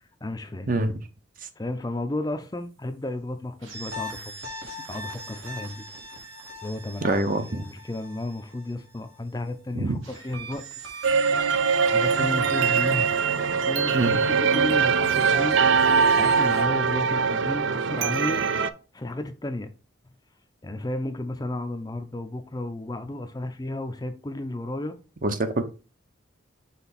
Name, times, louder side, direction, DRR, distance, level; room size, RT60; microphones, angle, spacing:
voice 1, 0.2-0.7 1.6-4.3 4.9-5.8 6.6-7.2 7.5-10.8 11.8-13.1 13.6-15.6 16.2-18.4 18.9-19.7 20.6-25.0, left 1 dB, 20° left, 0.5 m, -33 dB
sound 1, 3.6-9.2 10.0-16.6, right 2 dB, 85° right, 2.3 m, -41 dB
voice 2, 7.0-7.6 9.7-10.0 13.9-14.1 25.2-25.6, right 2 dB, 45° right, 0.8 m, -25 dB
sound 2, 11.0-18.7, right 5 dB, 70° right, 0.5 m, -22 dB
5.9 x 3.4 x 5.7 m
head